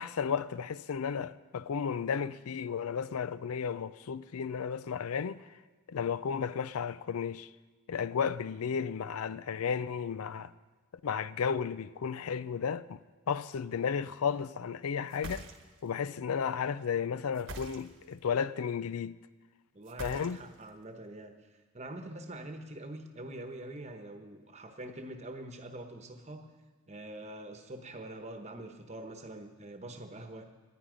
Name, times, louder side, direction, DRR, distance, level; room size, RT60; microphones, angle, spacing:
voice 1, 0.0-5.4 5.9-7.5 7.9-10.5 11.0-13.0 13.3-15.4 15.8-19.2 20.0-20.4, left 6 dB, 80° left, 0.4 m, -33 dB
sound 1, 15.1-15.9 17.3-18.2 19.8-20.7, right 2 dB, 55° right, 1.2 m, -44 dB
voice 2, 19.7-21.4 21.7-26.5 26.9-30.5, right 1 dB, 30° right, 1.1 m, -44 dB
19.0 x 10.0 x 5.1 m
head